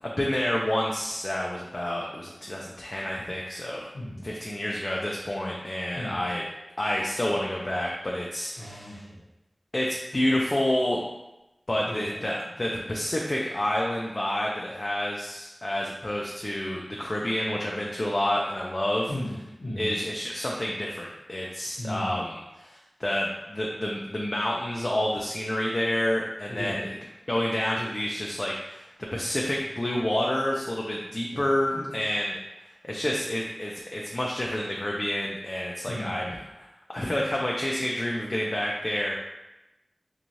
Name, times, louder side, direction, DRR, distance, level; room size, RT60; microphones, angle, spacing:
voice 1, 0.0-3.9 4.2-6.4 6.8-9.0 9.7-11.0 11.7-19.1 19.8-26.9 27.3-32.4 32.8-39.1, left 1 dB, 45° left, -3 dB, 0.4 m, -29 dB
voice 2, 3.9-4.3 5.9-6.2 8.6-9.0 11.9-12.1 19.1-19.9 21.8-22.3 26.5-26.8 31.3-31.5 31.7-31.9 35.8-36.2, left 1 dB, 90° left, -11 dB, 0.8 m, -35 dB
3.1 x 2.3 x 2.6 m, 0.96 s
wide cardioid pair, 45°, 0 cm